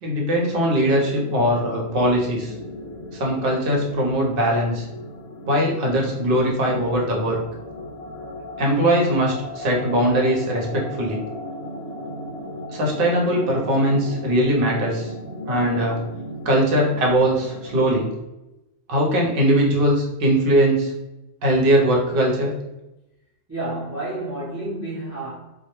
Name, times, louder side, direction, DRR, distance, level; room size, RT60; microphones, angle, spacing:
voice 1, 0.0-2.5 3.1-4.8 5.5-7.4 8.6-11.2 12.7-15.1 15.5-16.0 16.4-18.1 18.9-20.9 21.4-22.5, right 1 dB, 60° right, 0.8 m, -20 dB
sound 1, 0.5-18.1, left 1 dB, 70° left, 0.8 m, -36 dB
voice 2, 23.5-25.3, right 2 dB, 20° right, 0.6 m, -30 dB
2.1 x 2.0 x 2.9 m
omnidirectional pair, 1.1 m